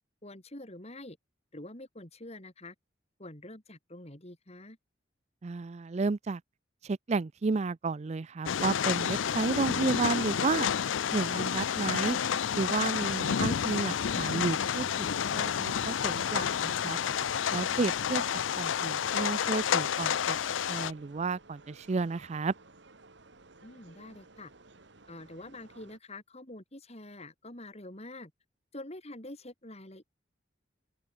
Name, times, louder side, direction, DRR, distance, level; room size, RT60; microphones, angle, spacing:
voice 1, 0.2-1.2 1.5-2.7 3.2-4.8 23.6-24.5 25.1-28.3 28.7-30.0, left 1 dB, 35° left, 4.0 m, -46 dB
voice 2, 5.4-6.4 6.8-10.7 11.1-12.2 12.6-17.0 17.5-18.2 18.5-22.5, right 4 dB, 35° right, 0.4 m, -32 dB
sound 1, 8.5-20.9, left 8 dB, 85° left, 0.5 m, -30 dB
sound 2, 8.7-26.0, right 3 dB, 65° right, 1.8 m, -56 dB
open air
head